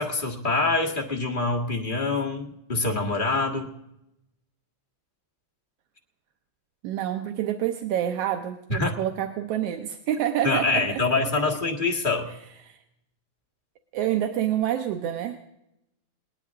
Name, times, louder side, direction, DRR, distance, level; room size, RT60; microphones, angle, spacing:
voice 1, 0.0-3.7 8.7-8.9 10.4-12.3, left 3 dB, 25° left, 1 dB, 1.1 m, -25 dB
voice 2, 6.8-11.0 12.7-12.8 13.9-15.4, right 11 dB, 70° right, 6 dB, 1.6 m, -27 dB
20.5 x 19.0 x 3.6 m, 0.84 s
omnidirectional pair, 3.5 m